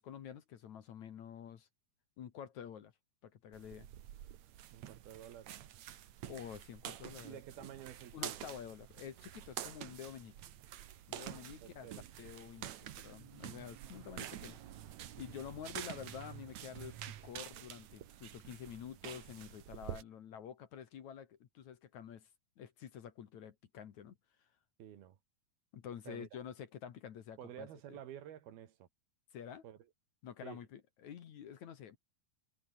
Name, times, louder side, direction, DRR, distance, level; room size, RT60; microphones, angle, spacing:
voice 1, 0.0-1.7 2.2-2.9 3.2-3.9 6.3-7.7 8.1-10.4 11.1-11.9 12.2-14.6 15.2-22.3 22.6-24.2 25.7-28.0 29.3-29.6 30.2-32.0, left 8 dB, 55° left, 2.7 m, -49 dB
sound 1, 3.5-20.0, right 11 dB, 60° right, 2.2 m, -48 dB
voice 2, 4.7-5.5 7.2-8.4 11.6-12.1 24.8-25.2 26.1-26.3 27.4-28.9 29.6-29.8 30.4-30.6, right 10 dB, 80° right, 3.8 m, -50 dB
omnidirectional pair, 4.4 m